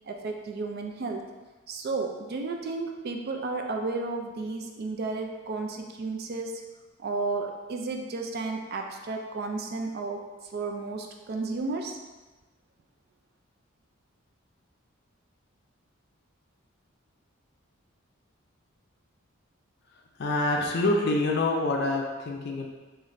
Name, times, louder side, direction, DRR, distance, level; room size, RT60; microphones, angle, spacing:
voice 1, 0.1-1.3 1.7-6.6 7.0-10.2 10.5-12.0, right 3 dB, 50° right, 3 dB, 0.3 m, -33 dB
voice 2, 20.2-22.7, left 2 dB, 50° left, 1 dB, 0.5 m, -26 dB
3.1 x 2.5 x 3.8 m, 1.2 s
head